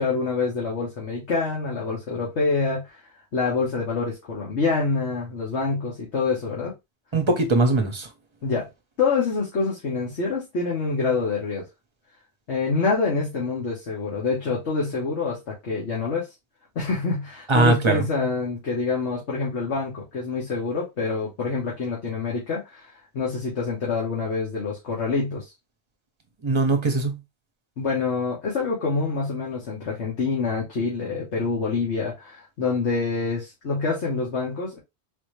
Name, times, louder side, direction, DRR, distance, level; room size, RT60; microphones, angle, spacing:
voice 1, 0.0-3.0 3.3-6.7 8.4-8.7 9.0-11.7 12.5-16.3 16.7-22.8 23.1-25.4 27.8-34.8, left 4 dB, 85° left, 1.6 m, -26 dB
voice 2, 7.1-8.1 17.5-18.0 26.4-27.2, right 3 dB, 30° right, 0.8 m, -21 dB
4.1 x 2.7 x 3.2 m
omnidirectional pair, 1.1 m